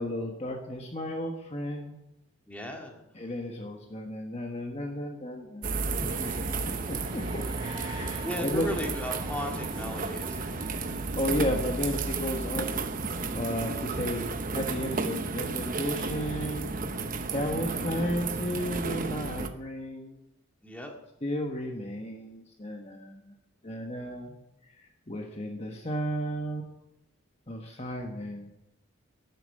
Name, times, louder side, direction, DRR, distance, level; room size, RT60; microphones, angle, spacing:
voice 1, 0.0-2.0 3.1-6.3 6.7-8.7 11.2-12.7 13.3-14.2 14.5-16.8 17.3-20.2 21.2-23.3 23.6-24.3 24.7-26.6 27.5-28.5, equal, 30° left, 2 dB, 1.3 m, -33 dB
voice 2, 2.5-3.3 6.1-6.6 8.0-10.6 20.6-20.9, left 1 dB, 5° left, 1 dB, 1.9 m, -37 dB
sound 1, 5.6-19.5, right 4 dB, 40° right, 0.9 m, -33 dB
sound 2, 5.7-14.4, right 1 dB, 25° right, 2.2 m, -45 dB
11.5 x 9.1 x 9.2 m, 0.89 s
head